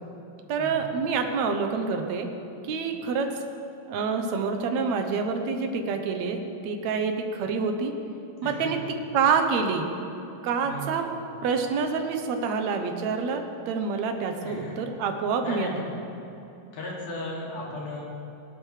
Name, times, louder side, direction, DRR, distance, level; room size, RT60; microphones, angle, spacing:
voice 1, 0.5-2.3 2.7-3.3 3.9-7.9 8.4-8.8 9.1-9.9 10.4-11.0 11.4-15.9, right 5 dB, 70° right, 5 dB, 2.1 m, -27 dB
voice 2, 8.4-8.7 10.6-11.1 14.4-14.8 15.4-15.8 16.7-18.0, left 1 dB, 80° left, -4 dB, 4.1 m, -36 dB
20.0 x 11.5 x 3.3 m, 2.9 s
omnidirectional pair, 3.6 m